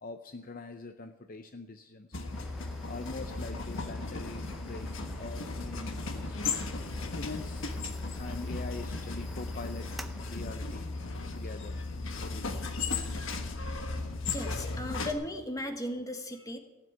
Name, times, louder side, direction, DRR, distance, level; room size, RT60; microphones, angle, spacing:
voice 1, 0.0-2.2 2.9-6.4 7.1-7.7 8.2-9.9 10.2-10.9 11.3-11.9 12.2-12.7, left 3 dB, 40° left, 8 dB, 0.6 m, -43 dB
sound 1, 2.1-15.1, left 3 dB, 60° left, 1.3 m, -36 dB
sound 2, 2.3-14.8, equal, ahead, 0.6 m, -49 dB
voice 2, 14.3-16.6, left 1 dB, 15° left, 5 dB, 1.3 m, -36 dB
16.0 x 7.5 x 9.2 m, 1.2 s
head